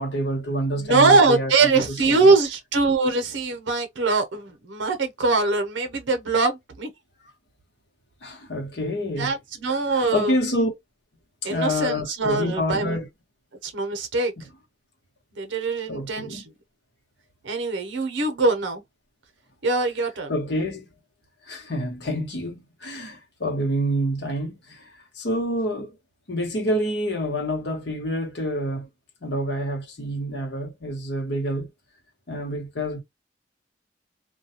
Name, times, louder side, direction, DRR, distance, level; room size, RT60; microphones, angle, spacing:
voice 1, 0.0-2.2 8.2-9.3 9.7-10.7 11.4-13.1 14.4-14.5 15.9-16.4 20.3-20.9 21.5-25.9 26.3-28.9 29.2-31.7 32.3-33.0, equal, 65° left, 1.0 m, -27 dB
voice 2, 0.7-6.9 9.2-10.4 11.4-12.9 13.6-14.3 15.4-16.4 17.4-18.8 19.6-20.4, right 3 dB, 85° right, 0.7 m, -22 dB
2.3 x 2.2 x 2.8 m
head